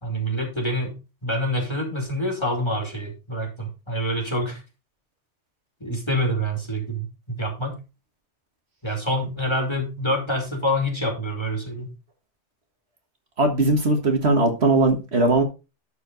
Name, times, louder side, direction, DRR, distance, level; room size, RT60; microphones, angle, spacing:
voice 1, 0.0-4.6 5.8-7.1 7.4-7.8 8.8-11.9, equal, 25° left, 2.7 m, -26 dB
voice 2, 13.4-15.4, right 2 dB, 65° right, 1.9 m, -19 dB
12.0 x 4.8 x 4.0 m
omnidirectional pair, 1.2 m